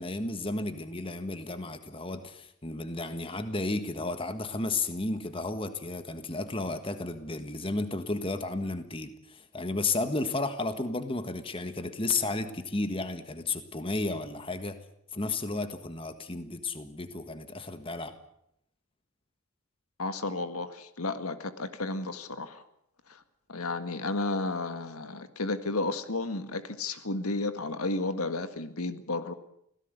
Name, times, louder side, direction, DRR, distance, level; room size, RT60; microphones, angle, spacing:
voice 1, 0.0-14.8 15.1-18.1, left 3 dB, 25° left, 9 dB, 1.5 m, -33 dB
voice 2, 20.0-22.6 23.1-23.2 23.5-29.3, left 2 dB, 85° left, 10 dB, 1.8 m, -32 dB
25.0 x 17.0 x 8.2 m, 0.75 s
head